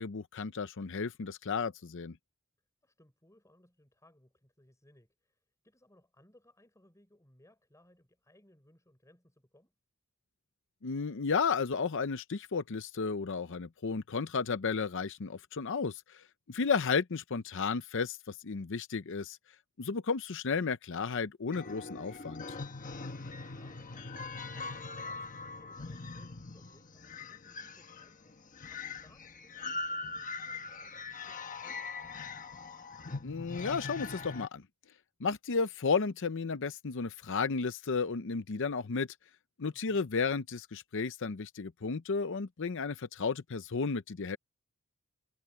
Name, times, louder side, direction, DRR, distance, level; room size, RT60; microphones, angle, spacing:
voice 1, 0.0-2.2 10.8-19.4 19.8-22.4 33.2-34.6 35.2-39.1 39.6-44.4, left 5 dB, 60° left, 0.7 m, -33 dB
voice 2, 2.8-9.8 16.5-17.0 23.0-31.9 39.7-40.1, left 1 dB, 15° left, 5.8 m, -65 dB
sound 1, 21.5-34.5, left 3 dB, 35° left, 1.2 m, -42 dB
head